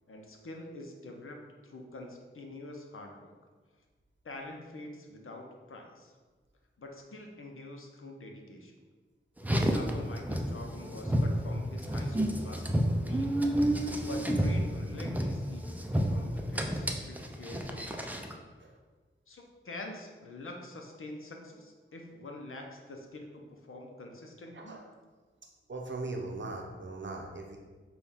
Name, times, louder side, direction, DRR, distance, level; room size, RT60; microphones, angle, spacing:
voice 1, 0.1-1.4 1.6-3.3 4.2-6.1 6.8-8.7 9.5-13.4 13.9-18.3 19.3-24.8, left 2 dB, 80° left, 2 dB, 0.6 m, -46 dB
Car, 9.4-18.4, equal, 10° right, 0.4 m, -30 dB
voice 2, 25.7-27.6, right 2 dB, 60° right, 1 dB, 0.7 m, -39 dB
5.7 x 2.3 x 3.6 m, 1.4 s
wide cardioid pair, 50°, 21 cm